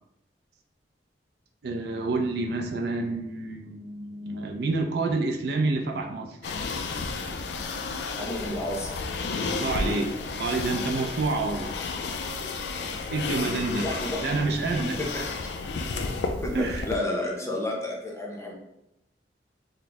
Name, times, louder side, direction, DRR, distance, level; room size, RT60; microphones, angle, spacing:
voice 1, 1.6-6.5 9.5-11.7 13.1-13.9 14.2-15.0 16.5-16.8, right 3 dB, 60° right, 3 dB, 0.4 m, -28 dB
sound 1, 6.4-17.0, left 4 dB, 65° left, 0.3 m, -32 dB
voice 2, 8.2-8.9 12.7-13.0 13.8-14.2 14.8-15.5 16.4-18.5, left 1 dB, 15° left, -1 dB, 0.6 m, -31 dB
4.0 x 2.0 x 2.8 m, 0.84 s
head